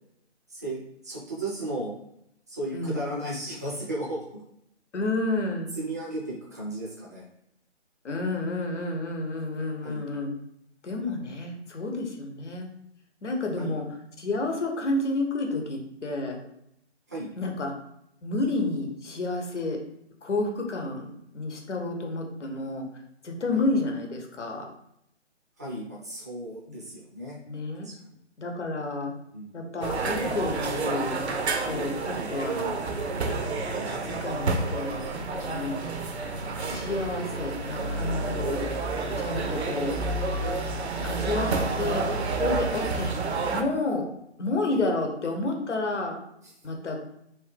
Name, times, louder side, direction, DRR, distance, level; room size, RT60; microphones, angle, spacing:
voice 1, 1.0-1.9 2.5-4.2 5.7-7.2 9.8-10.0 13.6-13.8 17.1-17.3 23.5-23.7 25.6-27.4 27.8-27.9 29.3-29.6 32.1-32.3 36.7-36.8 41.0-41.1 44.7-44.8, right 1 dB, 15° right, -6 dB, 0.4 m, -35 dB
voice 2, 2.7-3.1 4.9-5.8 8.0-10.3 10.8-12.7 13.2-13.8 14.2-16.4 17.4-17.7 18.2-19.8 20.2-22.9 23.2-24.6 26.7-26.8 27.5-27.9 28.4-29.1 29.5-31.2 31.7-32.8 33.8-35.0 35.3-35.8 36.5-38.7 39.2-40.0 41.0-41.5 41.8-42.1 42.4-43.1 43.5-44.1 44.4-46.2 46.6-47.0, left 2 dB, 80° left, 2 dB, 0.9 m, -30 dB
sound 1, 29.8-43.6, right 3 dB, 65° right, 0.6 m, -29 dB
2.9 x 2.3 x 3.3 m, 0.76 s
hypercardioid pair, 150°, 35 cm